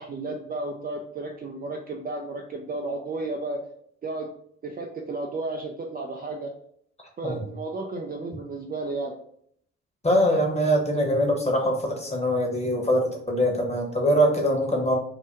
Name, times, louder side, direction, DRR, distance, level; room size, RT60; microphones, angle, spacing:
voice 1, 0.0-3.6 4.0-4.3 4.6-6.5 7.2-9.1, right 2 dB, 25° right, 2 dB, 0.5 m, -33 dB
voice 2, 10.0-14.9, equal, 20° left, 0 dB, 1.1 m, -23 dB
2.7 x 2.1 x 3.5 m, 0.65 s
hypercardioid pair, 45°, 36 cm